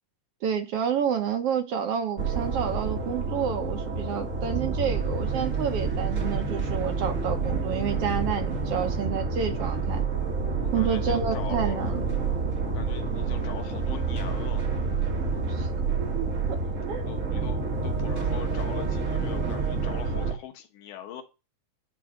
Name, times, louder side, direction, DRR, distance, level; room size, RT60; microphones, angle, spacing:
voice 1, 0.4-10.0 10.7-12.0 15.5-15.7 16.0-17.1, right 8 dB, 65° right, 1.7 m, -29 dB
sound 1, 2.2-20.3, right 4 dB, 40° right, 1.1 m, -28 dB
voice 2, 10.6-11.8 12.6-14.6 16.6-21.2, left 10 dB, 85° left, 2.7 m, -42 dB
10.5 x 3.9 x 5.0 m
omnidirectional pair, 3.5 m